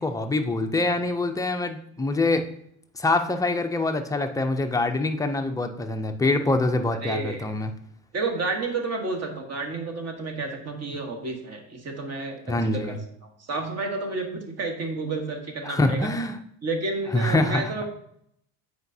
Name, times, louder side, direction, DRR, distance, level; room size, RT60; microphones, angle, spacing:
voice 1, 0.0-2.4 3.0-7.7 12.5-13.0 15.6-16.4 17.1-17.7, left 2 dB, 10° left, 5 dB, 0.3 m, -25 dB
voice 2, 7.0-7.5 8.1-16.1 16.6-17.9, right 3 dB, 35° right, 4 dB, 1.3 m, -31 dB
7.9 x 4.8 x 2.7 m, 0.72 s
supercardioid pair, 115°, 42 cm